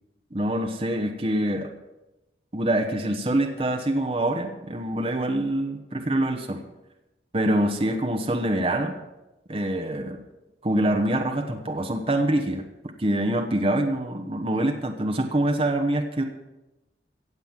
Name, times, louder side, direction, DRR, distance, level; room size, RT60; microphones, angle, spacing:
voice 1, 0.3-1.7 2.5-6.6 7.3-9.0 9.5-10.2 10.6-12.6 13.0-16.2, right 1 dB, 30° right, 4 dB, 1.0 m, -25 dB
16.0 x 7.7 x 7.3 m, 1.0 s
head